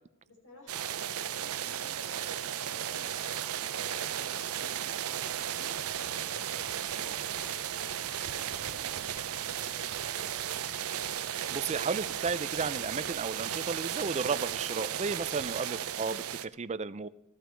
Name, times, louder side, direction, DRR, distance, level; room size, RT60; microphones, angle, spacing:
voice 1, 0.2-7.5 7.9-10.6, left 1 dB, 70° left, 0 dB, 4.6 m, -55 dB
sound 1, 0.7-16.5, right 10 dB, 80° right, 0.6 m, -35 dB
sound 2, 2.5-11.1, right 2 dB, 5° right, 2.3 m, -54 dB
voice 2, 11.5-17.1, right 4 dB, 30° right, 14 dB, 0.5 m, -33 dB
14.5 x 13.5 x 4.6 m, 0.85 s
head